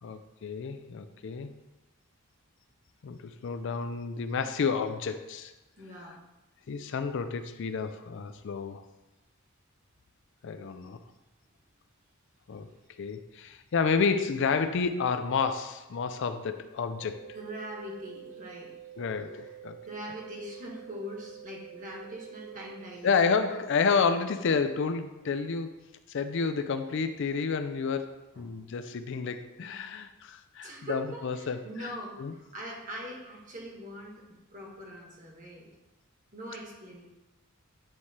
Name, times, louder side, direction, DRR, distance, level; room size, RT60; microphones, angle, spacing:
voice 1, 0.0-1.5 3.0-5.5 6.7-8.8 10.4-11.0 12.5-12.7 13.0-17.2 19.0-19.8 23.0-25.8 26.1-31.9 32.2-32.3, left 5 dB, 60° left, 10 dB, 0.4 m, -30 dB
voice 2, 5.8-6.2 17.3-18.7 19.8-23.2 28.3-28.6 30.6-35.7 36.3-37.0, equal, 40° right, -2 dB, 1.5 m, -42 dB
sound 1, 17.0-23.0, right 11 dB, 65° right, 0.7 m, -48 dB
9.2 x 3.2 x 4.2 m, 1.0 s
head